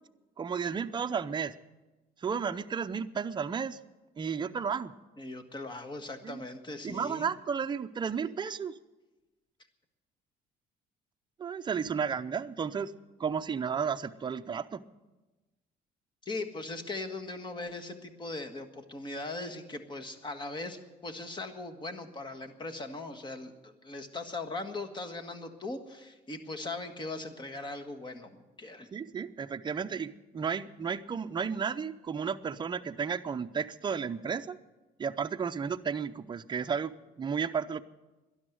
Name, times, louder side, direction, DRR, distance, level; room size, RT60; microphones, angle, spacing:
voice 1, 0.4-1.5 2.2-3.8 4.2-4.9 6.2-6.4 6.8-8.7 11.4-12.9 13.2-14.8 28.9-34.6 35.0-37.8, right 6 dB, 25° right, 9 dB, 0.6 m, -33 dB
voice 2, 5.2-7.3 16.2-28.3 28.6-28.9, left 2 dB, 25° left, 7 dB, 1.6 m, -39 dB
12.5 x 11.0 x 9.2 m, 1.1 s
cardioid pair, 110°, 17 cm